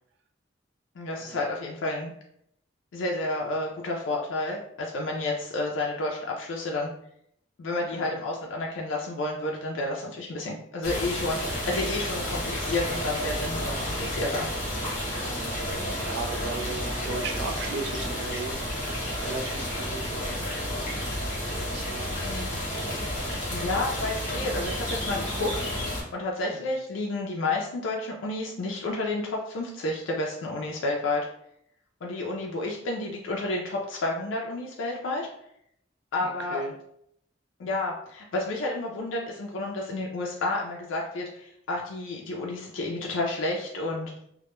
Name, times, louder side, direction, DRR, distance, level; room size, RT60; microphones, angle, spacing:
voice 1, 1.0-2.1 2.9-6.9 7.6-14.5 22.2-22.6 23.5-31.3 32.0-35.3 36.1-36.6 37.6-44.1, left 2 dB, 85° left, -1 dB, 0.4 m, -30 dB
sound 1, 10.8-26.0, left 1 dB, 40° left, 0.8 m, -31 dB
voice 2, 15.9-20.3 21.6-22.5 26.5-26.6 36.2-36.7, right 4 dB, 60° right, 4 dB, 0.3 m, -37 dB
2.1 x 2.1 x 2.9 m, 0.72 s
head